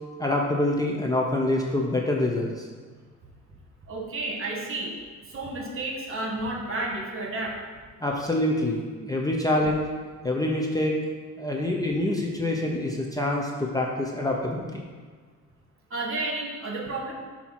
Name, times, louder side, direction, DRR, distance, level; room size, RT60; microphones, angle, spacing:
voice 1, 0.2-2.7 8.0-9.9 10.2-11.0 11.4-14.9, left 1 dB, 10° left, -1 dB, 0.7 m, -26 dB
voice 2, 3.9-5.0 5.3-7.5 15.9-17.1, right 2 dB, 45° right, -1 dB, 1.5 m, -31 dB
6.9 x 2.9 x 5.8 m, 1.5 s
cardioid pair, 90°, 30 cm